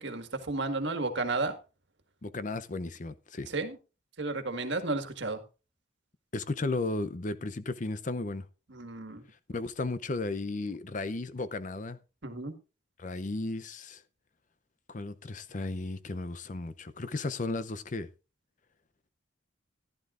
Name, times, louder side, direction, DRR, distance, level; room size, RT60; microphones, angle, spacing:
voice 1, 0.0-1.5 3.5-3.8 4.2-5.4 8.7-9.2 12.2-12.5, right 3 dB, 60° right, 1.7 m, -32 dB
voice 2, 2.2-3.5 6.3-8.5 9.5-12.0 13.0-14.0 14.9-18.1, left 2 dB, 40° left, 0.6 m, -34 dB
14.5 x 11.5 x 2.5 m
head